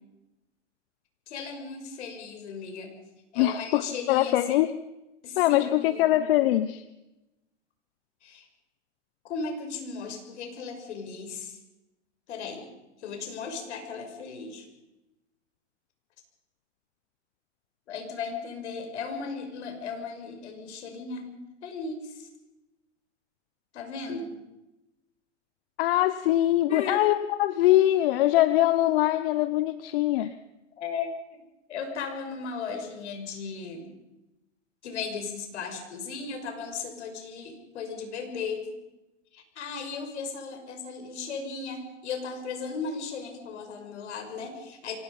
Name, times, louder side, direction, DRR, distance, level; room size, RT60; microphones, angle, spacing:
voice 1, 1.3-2.9 3.3-4.5 5.2-6.1 8.2-8.5 9.2-11.6 12.3-12.7 13.0-14.7 17.9-21.4 21.6-22.3 23.7-24.3 26.7-27.0 30.2-30.3 30.8-31.1 31.7-33.9 34.8-38.7 39.3-45.0, left 5 dB, 70° left, 5 dB, 6.2 m, -36 dB
voice 2, 3.4-4.7 5.4-6.8 25.8-30.3, left 14 dB, 50° left, 12 dB, 1.0 m, -23 dB
25.5 x 19.0 x 5.5 m, 0.97 s
hypercardioid pair, 130°, 36 cm